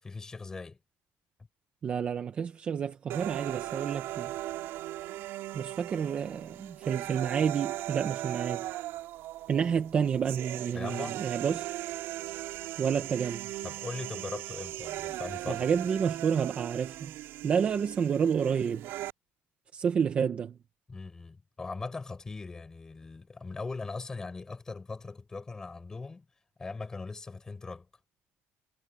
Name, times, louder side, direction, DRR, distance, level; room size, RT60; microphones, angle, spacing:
voice 1, 0.0-0.8 10.7-11.3 13.6-15.7 20.9-26.3 26.6-27.9, left 3 dB, 15° left, 7.0 m, -40 dB
voice 2, 1.8-4.3 5.5-8.7 9.5-11.7 12.8-13.5 15.5-17.1 17.4-18.9 19.7-20.6, right 7 dB, 30° right, 1.0 m, -29 dB
sound 1, 3.1-19.1, right 15 dB, 65° right, 5.9 m, -38 dB
cardioid pair, 180°, 4 cm